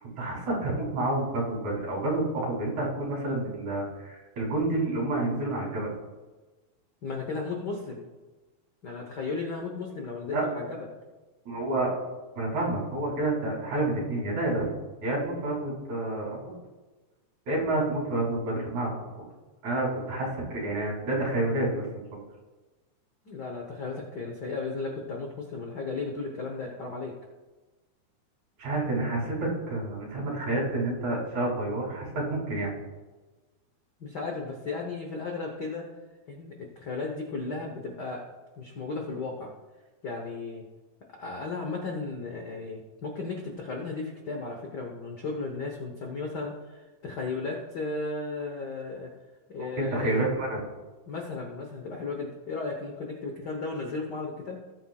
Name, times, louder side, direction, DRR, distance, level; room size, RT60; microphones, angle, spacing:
voice 1, 0.0-5.9 10.3-10.4 11.5-11.9 12.4-14.7 15.0-16.5 17.5-19.3 19.6-21.9 28.6-32.7 49.6-50.6, right 2 dB, 75° right, -3 dB, 4.4 m, -29 dB
voice 2, 7.0-8.0 8.8-10.9 23.3-27.1 34.0-35.9 36.3-38.2 38.6-39.5 40.0-40.6 41.2-49.1 49.5-50.3 51.1-54.6, left 3 dB, 65° left, 1 dB, 1.0 m, -35 dB
18.5 x 8.4 x 2.3 m, 1.2 s
omnidirectional pair, 3.3 m